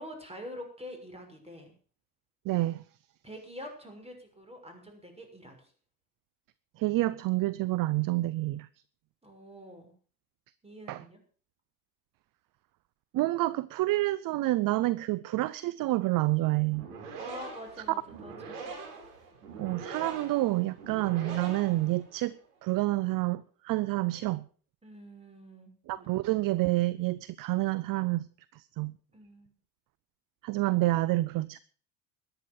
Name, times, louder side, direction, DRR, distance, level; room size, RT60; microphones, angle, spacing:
voice 1, 0.0-1.7 3.2-5.7 9.2-9.9 10.6-11.2 17.2-18.7 24.8-26.1 29.1-29.5, equal, 15° right, 6.3 m, -46 dB
voice 2, 2.5-2.8 6.8-8.7 10.9-11.0 13.1-16.9 19.6-22.3 22.6-24.4 25.9-28.3 28.5-28.9 30.4-31.6, right 18 dB, 45° right, 0.7 m, -28 dB
sound 1, 16.6-22.4, right 4 dB, 80° right, 4.7 m, -43 dB
13.5 x 10.5 x 7.0 m
hypercardioid pair, 75°, 45 cm